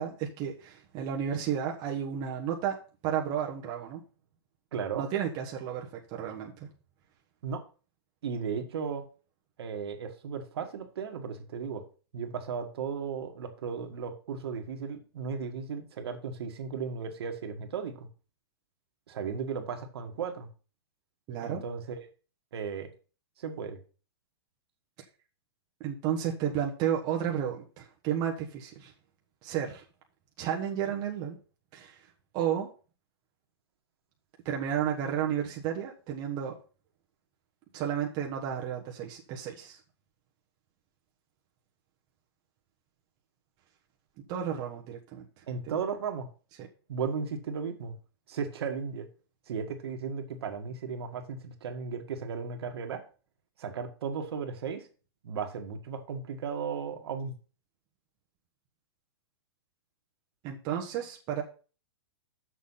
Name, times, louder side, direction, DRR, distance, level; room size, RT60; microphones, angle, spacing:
voice 1, 0.0-2.8 3.0-4.0 4.9-6.7 21.3-21.6 25.8-28.9 29.4-29.8 30.4-31.4 31.7-32.0 32.3-32.7 34.4-36.5 37.7-39.8 44.3-45.3 45.7-45.8 60.4-61.4, right 9 dB, 30° right, 0 dB, 1.3 m, -32 dB
voice 2, 4.7-5.1 7.4-7.6 8.2-9.0 9.6-11.8 12.1-18.1 19.1-20.5 21.4-22.0 22.5-22.9 23.4-23.8 45.5-46.3 46.9-47.9 48.3-49.1 49.5-53.0 53.6-54.9 55.2-57.3, right 6 dB, 65° right, 5 dB, 1.8 m, -35 dB
7.1 x 6.5 x 5.7 m, 0.37 s
hypercardioid pair, 160°, 14 cm